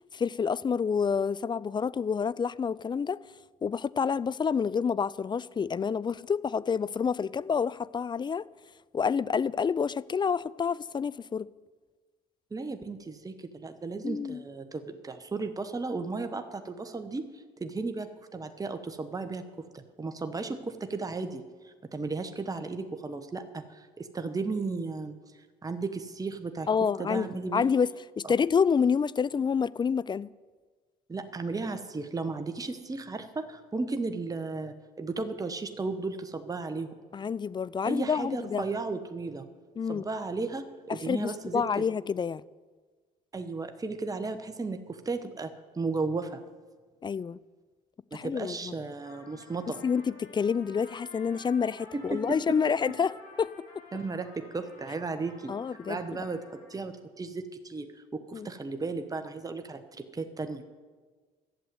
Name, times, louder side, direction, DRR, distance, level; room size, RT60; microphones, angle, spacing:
voice 1, 0.1-3.2 3.6-8.4 8.9-11.5 14.0-14.4 26.7-30.3 37.1-38.6 39.8-40.0 40.9-42.4 47.0-47.4 48.1-48.7 49.8-53.7 55.5-56.2 58.3-58.5, left 6 dB, 25° left, 0.4 m, -28 dB
voice 2, 12.5-19.4 19.7-25.1 25.6-26.7 27.0-27.7 28.2-28.3 31.1-36.9 37.8-39.5 39.9-41.8 43.3-46.4 48.1-49.8 51.9-52.4 53.9-55.5 55.9-60.6, right 3 dB, 20° right, 1.1 m, -35 dB
Trumpet, 49.0-56.9, left 3 dB, 85° left, 3.2 m, -52 dB
11.5 x 7.6 x 9.4 m
supercardioid pair, 70°, 18 cm